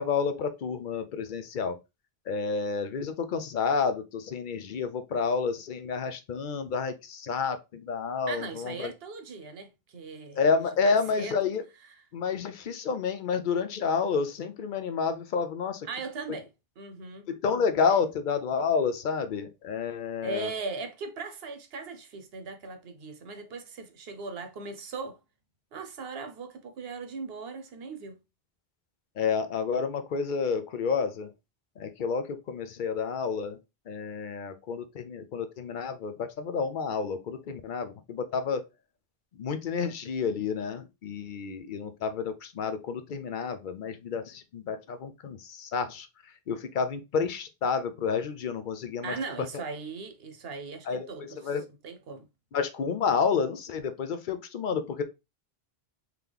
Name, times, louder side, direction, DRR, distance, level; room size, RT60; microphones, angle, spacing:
voice 1, 0.0-1.8 2.3-8.9 10.3-11.6 12.1-15.9 17.3-20.5 29.2-31.3 31.8-33.6 33.9-38.6 39.4-46.1 46.5-49.1 50.9-51.7 52.5-55.0, left 5 dB, 60° left, 0.7 m, -30 dB
voice 2, 8.3-11.5 12.0-12.1 15.8-16.5 16.8-17.3 17.9-18.0 20.2-25.2 25.7-28.2 49.0-51.4 51.7-52.3, right 4 dB, 75° right, 1.0 m, -39 dB
3.8 x 2.9 x 3.3 m
omnidirectional pair, 1.0 m